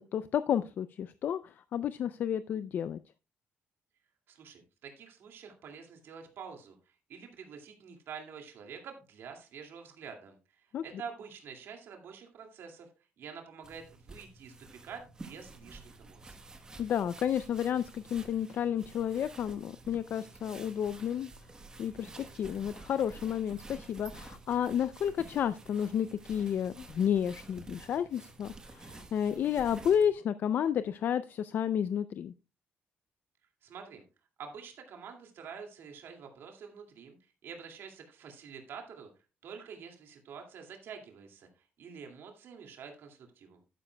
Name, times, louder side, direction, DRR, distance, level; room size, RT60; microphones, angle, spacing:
voice 1, 0.1-3.0 10.7-10.8 16.8-21.3 21.8-32.3, left 9 dB, 50° left, 0.4 m, -31 dB
voice 2, 4.3-6.8 7.1-12.9 13.2-16.4 33.6-34.0 34.4-37.2 37.4-39.1 39.4-43.6, right 6 dB, 65° right, 2.2 m, -47 dB
sound 1, 13.6-30.1, right 3 dB, 15° right, 1.1 m, -51 dB
12.0 x 9.6 x 2.2 m
cardioid pair, 175°, 4 cm